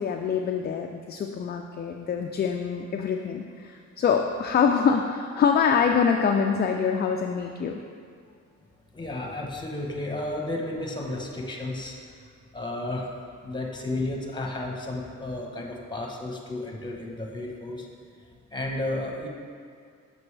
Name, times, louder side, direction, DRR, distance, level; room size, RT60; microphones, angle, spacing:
voice 1, 0.0-7.8, left 6 dB, 35° left, 3 dB, 0.4 m, -25 dB
voice 2, 8.9-12.0 12.5-13.1 13.4-17.9 18.5-19.3, left 2 dB, 15° left, 0 dB, 1.0 m, -32 dB
7.0 x 5.3 x 3.3 m, 2.3 s
cardioid pair, 90°, 30 cm